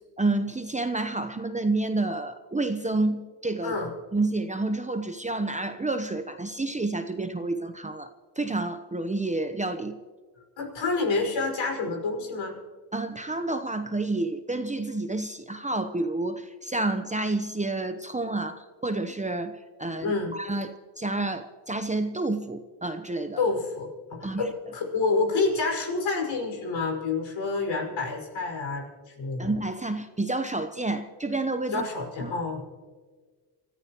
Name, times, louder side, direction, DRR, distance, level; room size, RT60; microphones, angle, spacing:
voice 1, 0.2-3.8 4.1-10.0 12.9-23.4 24.2-24.5 29.4-31.8 32.2-32.3, right 2 dB, 15° right, 8 dB, 0.8 m, -29 dB
voice 2, 10.6-12.6 20.0-20.4 23.4-29.5 31.7-32.6, left 3 dB, 65° left, 1 dB, 5.8 m, -28 dB
29.0 x 14.5 x 3.0 m, 1.5 s
cardioid pair, 85°, 49 cm